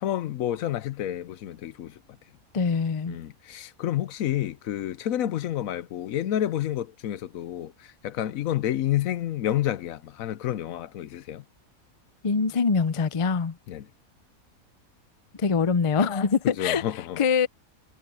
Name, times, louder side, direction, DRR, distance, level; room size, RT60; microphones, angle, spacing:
voice 1, 0.0-1.9 3.1-7.7 8.0-11.4 13.7-13.8 16.6-17.2, left 12 dB, 75° left, 1.1 m, -29 dB
voice 2, 2.5-3.2 12.2-13.5 15.4-16.8 17.2-17.5, left 5 dB, 40° left, 0.4 m, -23 dB
omnidirectional pair, 1.5 m